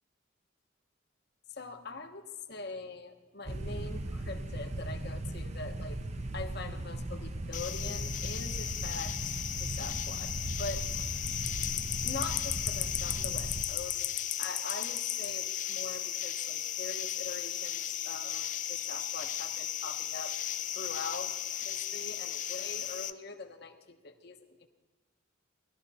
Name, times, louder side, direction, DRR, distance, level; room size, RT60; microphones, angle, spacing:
voice 1, 1.5-6.0 6.3-10.9 12.0-20.3 20.7-21.4 21.6-24.7, left 3 dB, 55° left, 6 dB, 1.2 m, -43 dB
sound 1, 3.5-13.6, right 1 dB, 35° right, 0.7 m, -38 dB
sound 2, 7.5-23.1, left 11 dB, 40° left, 0.5 m, -35 dB
19.5 x 13.0 x 4.2 m, 1.3 s
head